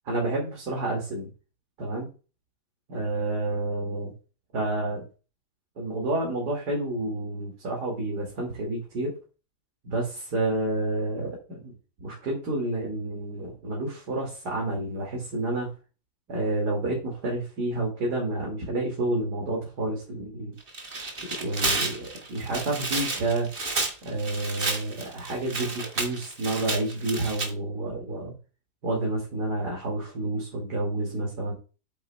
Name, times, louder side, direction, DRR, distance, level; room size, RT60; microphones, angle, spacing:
voice 1, 0.1-1.3 1.8-2.1 2.9-4.1 4.5-5.0 5.8-9.1 9.8-11.7 12.0-15.7 16.3-20.5 21.4-23.5 24.0-28.3 28.8-31.5, right 2 dB, 85° right, -2 dB, 2.9 m, -29 dB
Tearing, 20.6-27.5, right 3 dB, 35° right, 1.8 m, -31 dB
8.6 x 8.4 x 2.2 m, 0.34 s
omnidirectional pair, 1.7 m